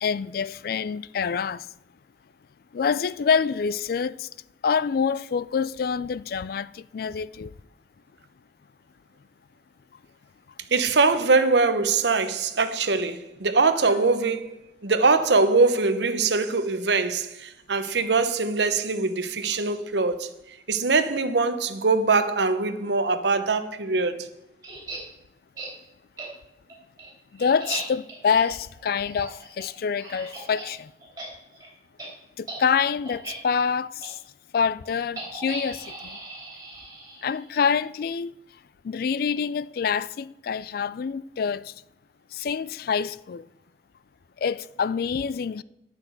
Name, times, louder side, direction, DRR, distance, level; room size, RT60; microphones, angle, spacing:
voice 1, 0.0-1.7 2.7-4.3 4.6-7.5 27.3-30.9 32.4-34.2 34.5-36.2 37.2-38.3 38.8-41.7 42.3-43.5 44.4-45.6, left 6 dB, 55° left, 0.3 m, -26 dB
voice 2, 10.7-14.6 14.8-24.3, right 4 dB, 75° right, 0.9 m, -22 dB
sound 1, 24.6-25.0 25.6-25.7 26.2-26.3 26.7-30.7 31.0-31.3 31.5-31.7 32.0-32.1 32.4-32.6 33.1-33.3 34.0-34.1 35.2-37.5, right 3 dB, 20° right, 3.1 m, -38 dB
10.0 x 5.9 x 7.8 m
head